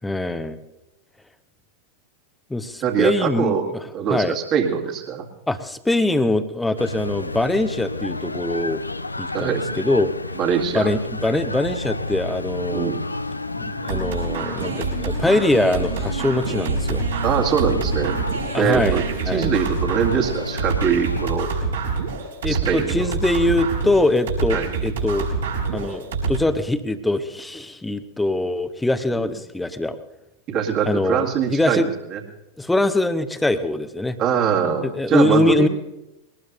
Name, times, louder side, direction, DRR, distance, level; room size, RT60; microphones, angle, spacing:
voice 1, 0.0-0.6 2.5-3.8 4.1-4.4 5.5-8.8 9.2-10.1 10.7-12.9 13.6-17.1 18.5-19.5 22.4-25.3 25.7-30.0 30.8-31.9 32.6-34.2 34.8-35.7, left 2 dB, 5° left, 11 dB, 1.0 m, -23 dB
voice 2, 2.8-3.7 3.9-5.3 9.3-9.6 10.4-10.9 12.7-13.0 17.2-18.2 18.6-21.5 22.5-23.1 24.5-24.7 29.1-29.3 30.5-31.8 32.1-32.2 34.2-35.7, right 7 dB, 35° right, 1 dB, 2.2 m, -22 dB
sound 1, 6.8-21.4, left 2 dB, 85° left, 0.5 m, -31 dB
sound 2, 13.9-26.4, right 4 dB, 70° right, 4.5 m, -26 dB
21.5 x 19.0 x 2.7 m, 0.91 s
figure-of-eight pair, 90°, 0 cm